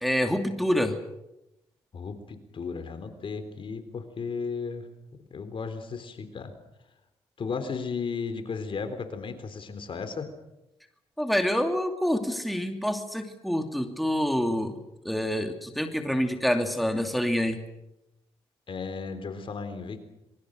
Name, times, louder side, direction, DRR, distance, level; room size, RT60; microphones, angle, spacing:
voice 1, 0.0-1.0 11.2-14.7 15.0-17.6, equal, ahead, 5 dB, 2.7 m, -27 dB
voice 2, 1.9-4.9 5.3-6.5 7.4-10.3 18.7-20.0, left 5 dB, 55° left, 9 dB, 3.8 m, -35 dB
26.5 x 23.0 x 6.6 m, 0.90 s
cardioid pair, 75°, 11 cm